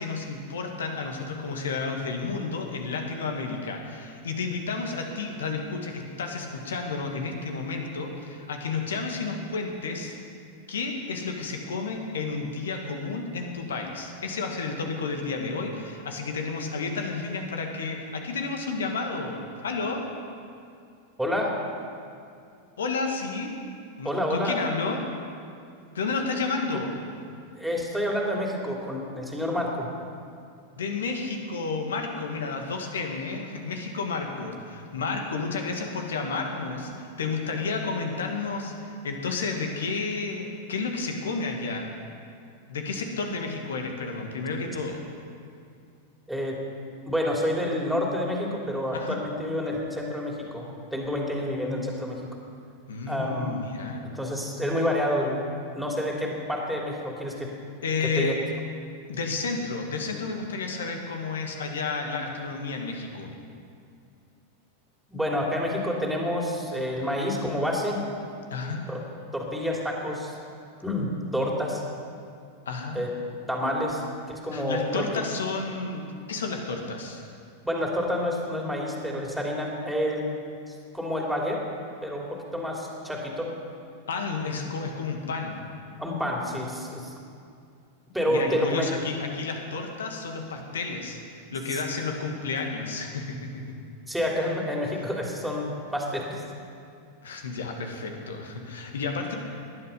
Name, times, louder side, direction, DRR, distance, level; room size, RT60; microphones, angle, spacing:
voice 1, 0.0-10.2 10.7-20.1 22.8-23.5 24.0-25.0 25.9-26.9 30.8-41.9 42.7-45.0 48.9-49.2 52.9-54.0 57.3-57.4 57.8-58.4 59.1-63.3 68.5-68.9 72.7-73.0 74.5-77.2 84.1-85.6 88.3-91.2 91.5-93.6 97.2-99.3, left 4 dB, 65° left, 3 dB, 2.1 m, -31 dB
voice 2, 21.2-21.5 24.0-24.5 27.6-29.9 46.3-46.6 47.0-52.2 53.1-53.6 54.1-55.4 55.7-57.5 58.2-58.3 65.1-68.0 68.9-69.0 69.3-70.4 70.8-71.8 72.9-73.1 73.5-74.0 74.3-75.1 77.6-80.3 80.7-81.6 82.0-83.5 86.0-87.1 88.1-88.9 91.7-91.8 94.1-96.4, equal, ahead, -2 dB, 3.1 m, -28 dB
19.0 x 11.5 x 5.5 m, 2.4 s
figure-of-eight pair, 90°, 0 cm